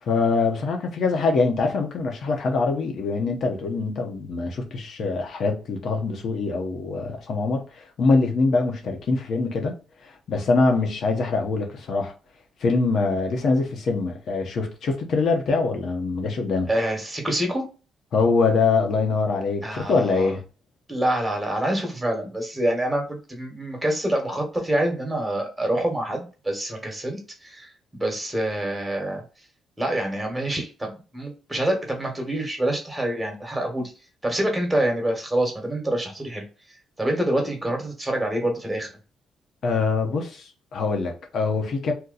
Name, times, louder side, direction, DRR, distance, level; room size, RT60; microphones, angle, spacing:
voice 1, 0.0-9.8 10.0-12.1 12.6-16.7 18.1-20.4 39.6-41.9, left 4 dB, 60° left, 0.9 m, -24 dB
voice 2, 16.7-17.6 19.6-20.3 20.9-29.2 29.8-33.9 34.2-36.5 37.0-38.9, right 1 dB, 10° right, 1.3 m, -26 dB
2.8 x 2.2 x 3.8 m
cardioid pair, 90°, 0 cm